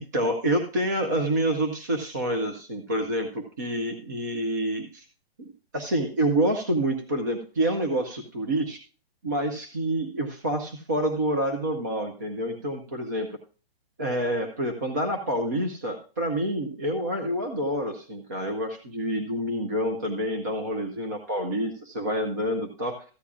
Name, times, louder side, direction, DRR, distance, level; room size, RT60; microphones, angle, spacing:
voice 1, 0.1-5.0 5.7-8.8 9.2-13.3 14.0-23.0, right 1 dB, 20° right, 5 dB, 0.4 m, -27 dB
14.0 x 9.7 x 2.4 m, 0.38 s
hypercardioid pair, 175°, 30 cm